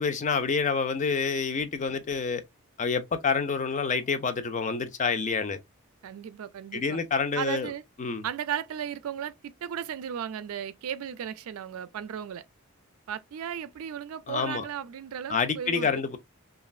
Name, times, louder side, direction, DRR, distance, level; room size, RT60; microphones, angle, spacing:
voice 1, 0.0-2.4 2.8-5.6 6.7-7.7 8.0-8.3 14.3-14.6 15.3-16.2, left 5 dB, 35° left, 0.5 m, -28 dB
voice 2, 6.0-7.0 7.4-7.8 8.2-12.4 13.1-16.0, right 8 dB, 85° right, 0.4 m, -35 dB
3.1 x 2.4 x 2.3 m
head